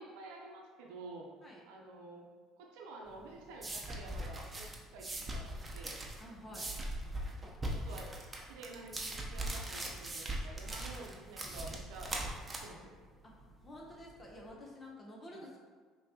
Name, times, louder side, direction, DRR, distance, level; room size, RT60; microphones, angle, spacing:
voice 1, 0.0-1.3 1.6-2.3 2.6-6.0 7.7-8.2 8.5-12.1 12.5-12.9 15.3-15.4, right 3 dB, 80° right, 0 dB, 0.8 m, -50 dB
sound 1, 3.1-14.4, right 1 dB, 20° right, 0.8 m, -41 dB
voice 2, 6.2-6.7 13.2-13.3 13.6-15.6, left 1 dB, 30° left, -2 dB, 0.9 m, -50 dB
5.4 x 3.0 x 2.9 m, 1.5 s
supercardioid pair, 75°, 0 cm